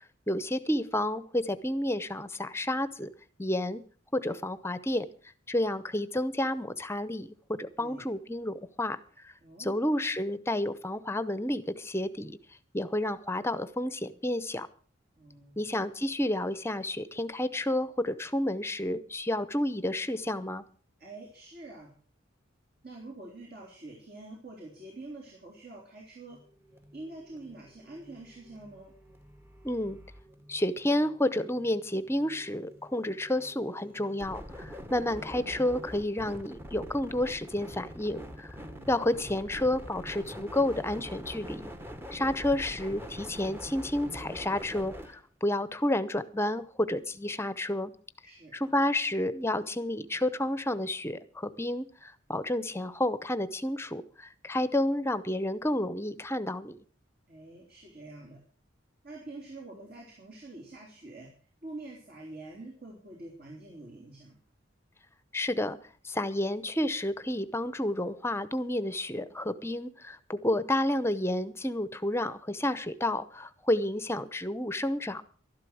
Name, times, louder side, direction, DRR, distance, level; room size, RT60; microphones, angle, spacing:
voice 1, 0.3-3.1 3.4-3.8 4.1-5.1 5.5-7.3 7.6-9.3 9.6-12.4 12.7-14.7 15.6-20.6 29.6-30.0 30.5-38.5 38.9-41.7 42.1-47.9 48.5-56.8 65.3-65.8 66.0-75.2, left 1 dB, 15° left, 14 dB, 0.8 m, -30 dB
voice 2, 9.4-9.8 15.2-15.6 21.0-21.9 22.8-26.4 26.9-28.9 34.7-34.9 38.6-38.9 48.2-48.5 57.3-58.4 59.0-61.3 61.6-64.4, right 2 dB, 55° right, -1 dB, 3.4 m, -46 dB
sound 1, 26.3-45.2, equal, 10° right, 1.0 m, -45 dB
12.5 x 11.5 x 6.3 m, 0.42 s
head